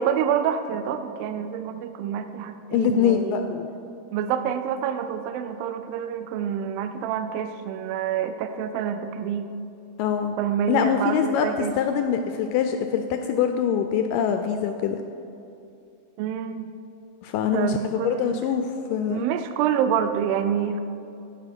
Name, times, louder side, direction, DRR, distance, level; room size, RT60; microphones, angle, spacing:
voice 1, 0.0-3.5 4.1-9.5 10.4-11.8 16.2-16.7 17.5-18.4 19.1-20.8, right 8 dB, 80° right, 9 dB, 2.2 m, -27 dB
voice 2, 2.7-3.7 10.0-10.3 10.7-15.0 17.2-19.2, left 7 dB, 85° left, 6 dB, 1.9 m, -24 dB
15.5 x 5.6 x 6.0 m, 2.7 s
omnidirectional pair, 4.3 m